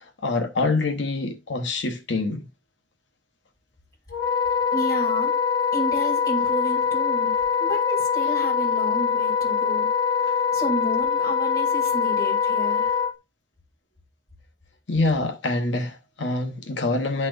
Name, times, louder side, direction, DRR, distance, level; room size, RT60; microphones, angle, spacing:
voice 1, 0.2-2.4 14.9-17.3, left 2 dB, 85° left, 0.9 m, -25 dB
Wind instrument woodwind instrument, 4.1-13.1, left 6 dB, 65° left, 1.2 m, -23 dB
voice 2, 4.7-5.3 5.7-7.3 7.6-9.9 10.2-12.9, equal, 20° left, 2.9 m, -31 dB
12.0 x 4.2 x 2.5 m
head